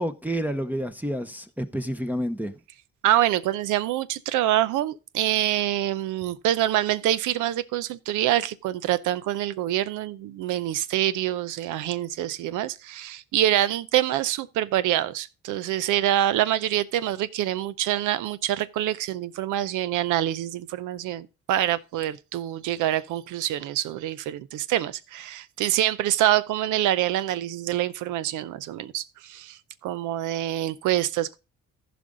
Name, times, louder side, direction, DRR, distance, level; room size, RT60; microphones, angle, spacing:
voice 1, 0.0-2.5, equal, 5° right, 0.7 m, -29 dB
voice 2, 3.0-31.4, right 12 dB, 90° right, 0.6 m, -26 dB
14.5 x 5.2 x 3.8 m
cardioid pair, 90°, 30 cm